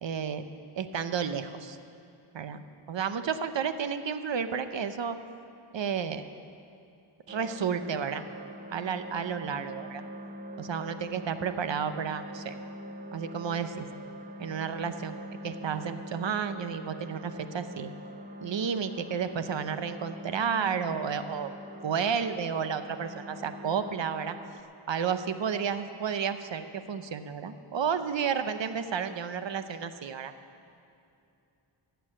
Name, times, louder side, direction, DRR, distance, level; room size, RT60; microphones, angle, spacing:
voice 1, 0.0-0.4 0.7-1.8 2.3-5.2 5.7-6.2 7.3-8.2 8.7-10.0 10.6-12.6 13.1-13.9 14.4-15.2 15.4-17.9 18.4-21.5 21.8-24.4 24.9-30.3, right 7 dB, 60° right, 10 dB, 0.8 m, -32 dB
sound 1, 7.3-24.6, equal, 20° right, 0.8 m, -43 dB
13.5 x 8.1 x 8.9 m, 2.6 s
wide cardioid pair, 90°, 50 cm